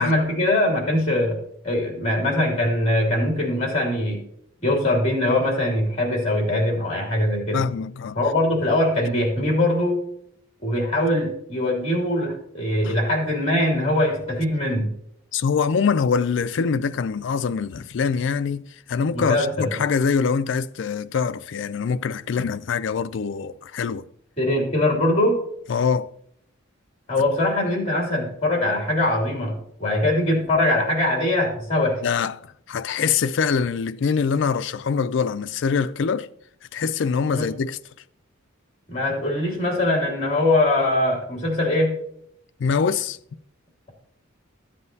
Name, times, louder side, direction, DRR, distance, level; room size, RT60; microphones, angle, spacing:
voice 1, 0.0-1.4 1.6-4.2 4.6-7.6 8.1-10.0 10.6-14.9 19.1-19.7 24.4-25.4 27.1-32.0 37.2-37.5 38.9-42.0, left 1 dB, 30° left, 2.5 m, -22 dB
voice 2, 7.5-8.2 12.8-12.9 15.3-24.0 25.7-26.1 32.0-36.3 36.7-37.8 42.6-43.2, left 6 dB, 60° left, 0.4 m, -24 dB
13.0 x 7.6 x 2.7 m
head